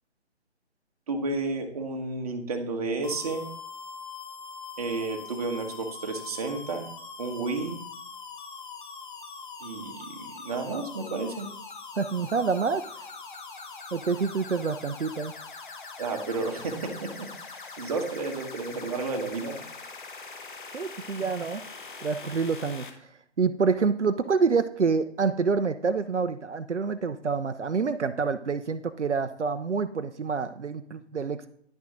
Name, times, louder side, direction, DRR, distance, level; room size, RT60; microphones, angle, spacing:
voice 1, 1.1-3.5 4.8-6.9 7.2-7.8 9.6-11.5 16.0-17.3 17.8-19.6, right 3 dB, 35° right, 4 dB, 1.2 m, -31 dB
sound 1, 3.0-22.9, left 4 dB, 45° left, 1.3 m, -42 dB
voice 2, 12.0-13.0 13.9-15.3 20.7-21.6 22.0-23.1 23.4-31.5, right 5 dB, 80° right, 9 dB, 0.7 m, -27 dB
10.0 x 6.1 x 3.7 m, 0.66 s
figure-of-eight pair, 145°, 35 cm